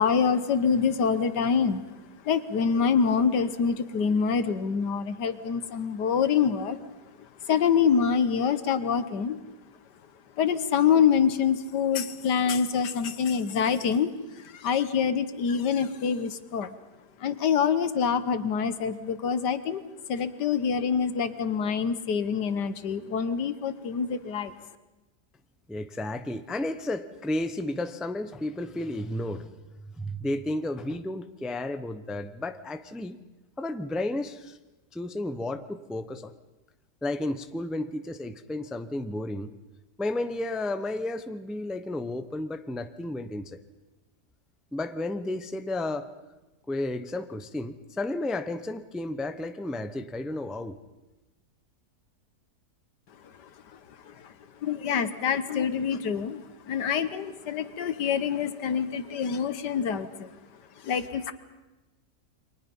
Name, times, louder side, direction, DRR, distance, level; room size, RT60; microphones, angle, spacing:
voice 1, 0.0-1.8 2.2-6.8 7.4-9.4 10.4-16.8 17.2-19.8 20.1-24.5 53.4-53.8 54.0-54.3 54.6-60.4 60.8-61.3, left 6 dB, 85° left, 12 dB, 1.8 m, -26 dB
voice 2, 25.7-29.5 29.8-33.2 33.6-34.6 34.9-36.3 37.0-39.5 40.0-43.6 44.7-46.1 46.7-50.8, left 1 dB, ahead, 10 dB, 0.5 m, -32 dB
29.5 x 23.5 x 5.5 m, 1.1 s
omnidirectional pair, 1.8 m